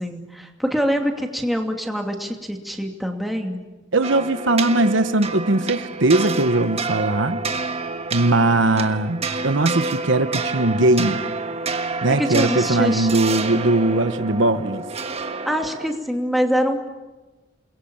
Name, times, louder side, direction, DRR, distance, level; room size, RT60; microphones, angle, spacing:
voice 1, 0.0-3.6 12.1-13.1 15.5-16.9, equal, ahead, 3 dB, 2.6 m, -24 dB
voice 2, 3.9-7.5 8.1-11.2 12.0-14.8, right 2 dB, 75° right, 11 dB, 1.1 m, -20 dB
sound 1, 4.0-16.0, right 4 dB, 30° right, 1.4 m, -29 dB
29.0 x 22.0 x 8.8 m, 1.2 s
head